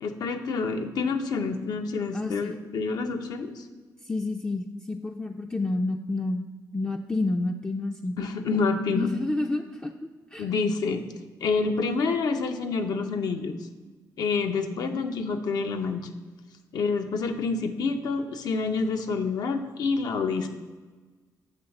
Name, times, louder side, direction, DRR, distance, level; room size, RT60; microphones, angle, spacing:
voice 1, 0.0-3.7 8.2-9.1 10.4-11.0 11.4-13.6 14.2-16.1 16.7-20.5, left 4 dB, 75° left, 6 dB, 0.6 m, -28 dB
voice 2, 2.1-2.5 4.0-6.4 6.7-8.2 8.9-9.9 10.3-10.4 14.8-15.0, left 2 dB, 15° left, 3 dB, 0.3 m, -29 dB
6.7 x 3.1 x 5.8 m, 1.3 s
cardioid pair, 80°, 7 cm